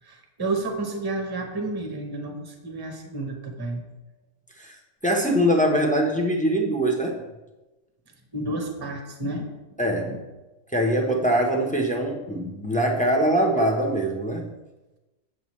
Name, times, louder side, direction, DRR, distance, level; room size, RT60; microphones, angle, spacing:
voice 1, 0.0-3.8 8.3-9.5 9.8-10.2, right 2 dB, 20° right, 3 dB, 0.8 m, -31 dB
voice 2, 5.0-7.2 9.8-10.2 10.7-14.5, equal, 10° left, 1 dB, 0.5 m, -23 dB
7.9 x 7.2 x 3.1 m, 1.1 s
omnidirectional pair, 1.5 m